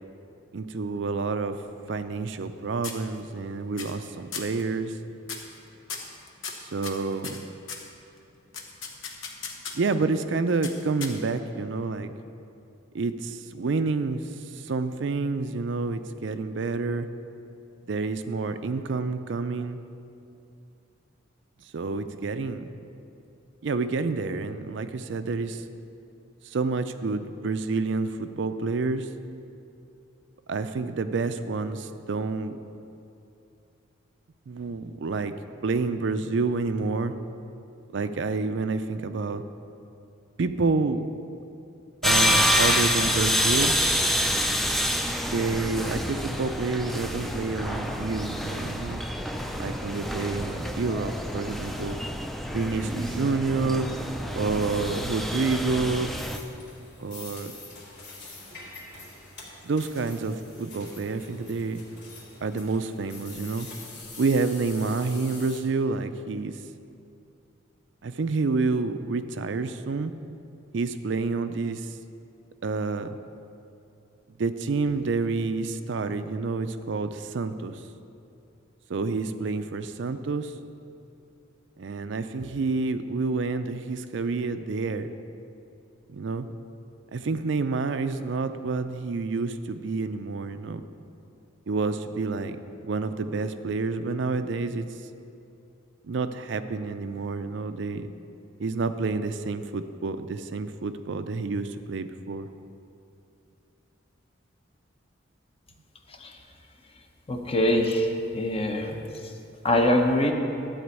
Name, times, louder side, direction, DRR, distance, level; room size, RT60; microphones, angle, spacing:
voice 1, 0.5-1.6 1.9-4.9 6.6-7.4 9.7-12.1 12.9-14.2 14.5-17.1 17.9-19.8 21.7-22.6 23.6-25.6 26.4-29.1 30.5-32.6 34.5-35.3 35.6-37.1 37.9-39.4 40.4-41.0 42.0-43.8 45.3-49.0 49.6-52.0 52.5-53.9 54.3-56.1 57.0-57.5 59.6-61.8 62.4-63.7 64.2-66.6 68.0-70.1 70.7-71.9 72.6-73.1 74.4-77.8 78.9-80.5 81.8-85.1 86.1-86.5 87.1-90.8 91.7-92.6 92.9-94.9 96.0-98.1 98.6-102.5, right 4 dB, 65° right, 10 dB, 0.4 m, -28 dB
sound 1, 1.6-2.5 2.8-3.4 3.8-4.1 4.3-4.6 5.2-5.6 5.9-7.9 8.5-9.9 10.6-11.5, left 5 dB, 85° left, 1.1 m, -38 dB
sound 2, 42.0-56.4, equal, ahead, 0.4 m, -27 dB
sound 3, 56.0-65.6, left 3 dB, 60° left, 2.7 m, -45 dB
voice 2, 107.3-109.0 109.6-110.3, left 1 dB, 30° left, 3 dB, 0.8 m, -23 dB
12.5 x 4.4 x 8.2 m, 2.7 s
head